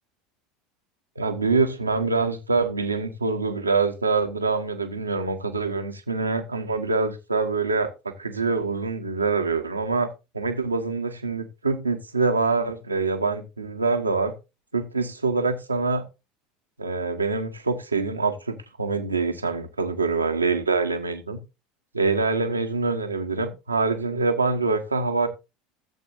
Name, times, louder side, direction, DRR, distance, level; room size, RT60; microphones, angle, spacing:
voice 1, 1.2-14.3 14.7-16.0 16.8-21.4 21.9-25.3, right 3 dB, 85° right, 1.1 m, -25 dB
14.5 x 7.7 x 2.6 m
figure-of-eight pair, 70°, 0 cm